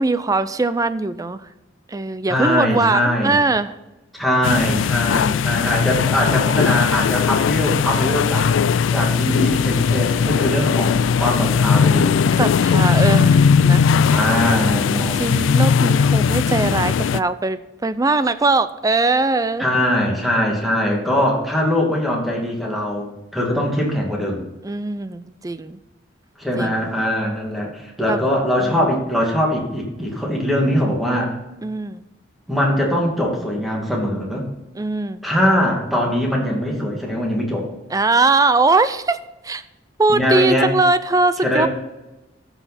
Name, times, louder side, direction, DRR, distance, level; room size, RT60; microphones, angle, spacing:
voice 1, 0.0-1.4 1.9-3.7 12.4-13.9 15.2-19.7 24.6-25.8 26.6-26.9 28.1-28.2 28.6-28.9 31.6-32.0 34.8-35.2 37.9-39.2 39.4-39.6 40.0-41.7, right 3 dB, 20° right, 13 dB, 0.4 m, -20 dB
voice 2, 2.3-3.4 4.1-8.5 8.9-12.2 14.1-15.2 19.6-24.4 26.4-31.3 32.5-34.5 35.2-37.7 40.1-40.7 41.4-41.7, equal, ahead, -2 dB, 2.3 m, -21 dB
sound 1, 4.4-17.2, left 6 dB, 85° left, 0.3 m, -18 dB
sound 2, 9.1-15.5, right 2 dB, 55° right, 1.5 m, -38 dB
14.5 x 5.7 x 4.2 m, 1.0 s
head